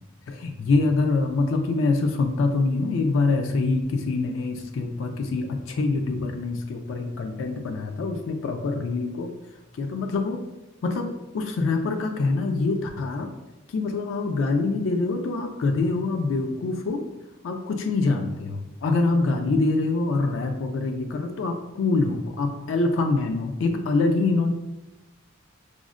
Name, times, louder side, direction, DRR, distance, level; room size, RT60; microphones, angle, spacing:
voice 1, 0.3-9.3 9.8-10.4 10.8-13.3 13.7-17.0 17.4-24.5, left 3 dB, 80° left, 4 dB, 0.3 m, -25 dB
4.8 x 2.0 x 2.4 m, 1.0 s
head